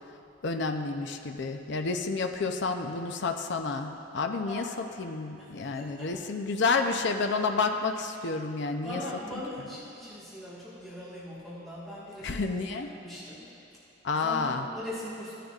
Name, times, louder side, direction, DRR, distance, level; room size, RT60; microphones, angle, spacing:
voice 1, 0.4-9.0 12.2-12.9 14.0-14.7, left 4 dB, 60° left, 5 dB, 0.5 m, -30 dB
voice 2, 4.4-4.8 5.4-5.5 5.8-6.1 8.8-12.4 12.7-13.5 14.1-15.3, left 1 dB, ahead, -11 dB, 1.5 m, -40 dB
15.0 x 10.0 x 2.4 m, 2.9 s
head